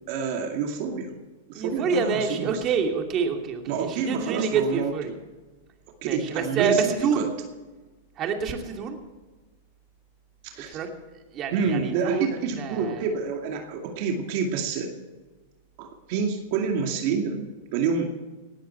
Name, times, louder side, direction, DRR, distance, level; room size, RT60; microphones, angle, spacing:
voice 1, 0.1-1.1 1.5-2.6 3.7-4.9 6.0-7.3 10.4-10.8 11.5-14.9 15.8-18.1, right 6 dB, 55° right, 3 dB, 2.3 m, -28 dB
voice 2, 1.5-5.1 6.0-7.2 8.2-9.0 10.7-10.9 11.3-13.0, right 5 dB, 35° right, 3 dB, 2.7 m, -27 dB
19.0 x 14.0 x 4.6 m, 1.3 s
hypercardioid pair, 125°, 0 cm